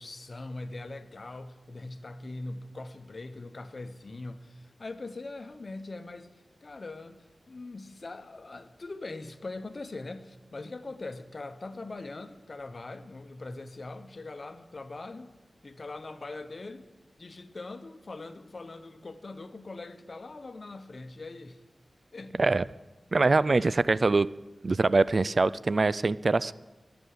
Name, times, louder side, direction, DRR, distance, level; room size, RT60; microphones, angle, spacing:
voice 1, 0.0-6.3 6.6-15.3 15.6-16.9 17.2-21.6 22.1-22.4 23.2-23.7, left 2 dB, 55° left, 10 dB, 1.1 m, -41 dB
voice 2, 23.1-24.3 24.6-26.5, right 3 dB, 55° right, 18 dB, 0.4 m, -23 dB
19.5 x 6.9 x 7.8 m, 1.2 s
cardioid pair, 50°, 0 cm